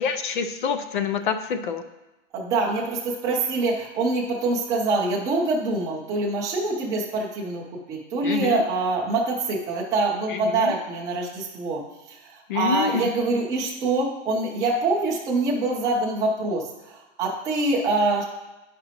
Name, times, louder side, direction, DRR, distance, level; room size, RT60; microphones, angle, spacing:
voice 1, 0.0-1.8 8.2-8.6 10.3-10.8 12.5-13.1, left 6 dB, 45° left, 8 dB, 0.5 m, -27 dB
voice 2, 2.3-11.8 12.1-18.2, right 3 dB, 10° right, -4 dB, 0.6 m, -25 dB
9.7 x 5.1 x 2.9 m, 1.0 s
supercardioid pair, 175°, 35 cm